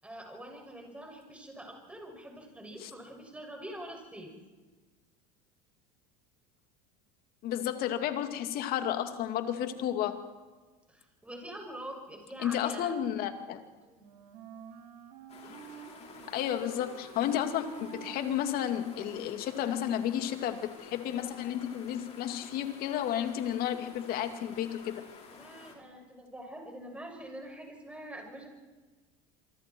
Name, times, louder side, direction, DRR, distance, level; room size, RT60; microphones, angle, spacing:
voice 1, 0.0-4.3 10.9-12.9 13.8-14.1 25.3-28.5, right 1 dB, 5° right, 2 dB, 6.9 m, -45 dB
voice 2, 7.4-10.2 12.4-13.6 15.4-15.6 16.3-25.0, left 10 dB, 55° left, 7 dB, 2.5 m, -32 dB
Wind instrument woodwind instrument, 13.9-19.9, right 8 dB, 75° right, 4.2 m, -50 dB
sound 1, 15.3-25.8, left 5 dB, 35° left, 5.1 m, -51 dB
27.0 x 24.0 x 4.6 m, 1.3 s
supercardioid pair, 120°, 19 cm